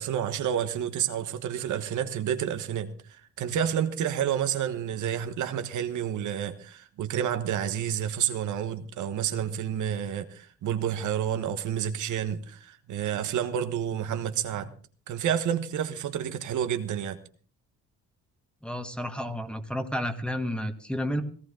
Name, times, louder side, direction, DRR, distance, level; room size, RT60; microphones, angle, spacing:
voice 1, 0.0-2.9 3.4-14.7 15.1-17.2, right 9 dB, 75° right, 1.3 m, -29 dB
voice 2, 18.6-21.2, equal, 5° left, 1.9 m, -31 dB
17.5 x 16.0 x 3.8 m
cardioid pair, 90°, 30 cm